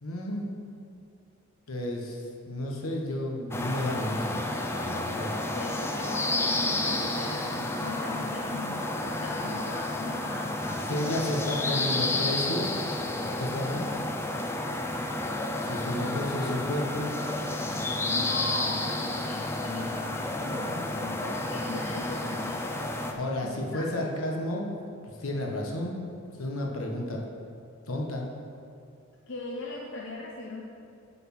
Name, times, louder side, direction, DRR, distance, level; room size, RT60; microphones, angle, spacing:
voice 1, 0.0-0.5 1.7-4.5 4.8-5.3 10.6-12.7 13.2-13.8 15.6-17.1 23.2-24.7 25.0-26.0 26.4-27.2 27.9-28.3, left 1 dB, 80° left, 0 dB, 1.2 m, -32 dB
sound 1, 3.5-23.1, left 2 dB, 10° left, 0.4 m, -31 dB
voice 2, 5.5-11.1 11.4-12.1 15.8-16.0 18.1-23.0 23.4-24.0 29.3-30.6, left 2 dB, 60° left, -2 dB, 0.7 m, -39 dB
9.1 x 4.2 x 6.0 m, 2.5 s
head